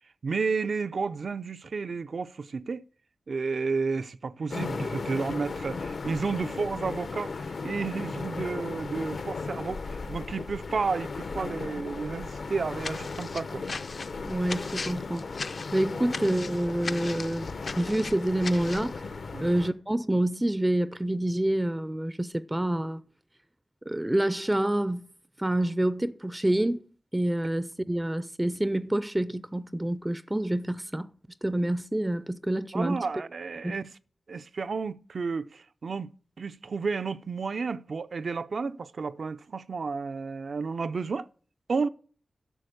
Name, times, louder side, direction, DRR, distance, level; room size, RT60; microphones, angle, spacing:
voice 1, 0.2-2.8 3.3-13.6 19.3-19.5 32.7-33.8 34.3-36.1 36.4-41.3 41.7-41.9, right 4 dB, 70° right, 0.5 m, -32 dB
sound 1, 4.5-19.7, left 4 dB, 75° left, 1.0 m, -36 dB
sound 2, 12.8-18.9, left 4 dB, 60° left, 0.6 m, -38 dB
voice 2, 14.3-15.3 15.7-17.5 17.8-19.1 19.4-23.0 23.9-25.1 25.4-26.8 27.1-31.1 31.4-33.1 33.6-33.8, right 1 dB, 15° right, 0.4 m, -27 dB
11.0 x 7.0 x 6.6 m
wide cardioid pair, 80°, 0 cm